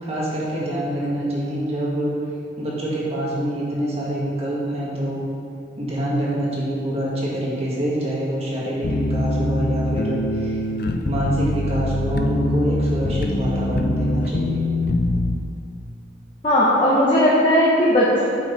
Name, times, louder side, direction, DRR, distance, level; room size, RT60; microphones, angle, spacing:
voice 1, 0.0-2.1 2.6-5.2 5.8-10.6 10.9-14.6, right 1 dB, 35° right, -6 dB, 1.9 m, -26 dB
sound 1, 8.8-15.4, left 1 dB, 50° left, 0.5 m, -23 dB
voice 2, 16.4-18.2, equal, 30° left, -7 dB, 1.1 m, -17 dB
9.1 x 7.1 x 4.2 m, 2.5 s
head